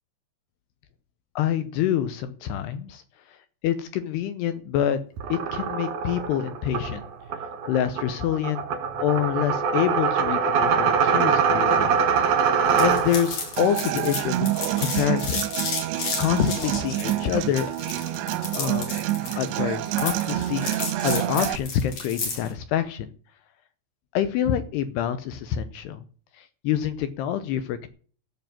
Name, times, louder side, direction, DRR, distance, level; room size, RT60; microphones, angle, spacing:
voice 1, 1.4-3.0 3.6-5.0 5.3-7.0 7.7-8.6 9.0-12.0 12.7-14.4 14.8-15.4 16.2-17.7 18.6-19.0 19.4-20.7 21.0-23.1 24.1-26.0 26.4-27.9, left 10 dB, 75° left, 11 dB, 2.5 m, -26 dB
sound 1, 5.2-13.5, right 6 dB, 65° right, 2.1 m, -23 dB
sound 2, 12.8-22.5, left 4 dB, 45° left, 5.7 m, -32 dB
Human voice / Acoustic guitar, 13.6-21.6, right 14 dB, 80° right, 2.6 m, -28 dB
14.0 x 5.9 x 8.9 m, 0.42 s
omnidirectional pair, 5.6 m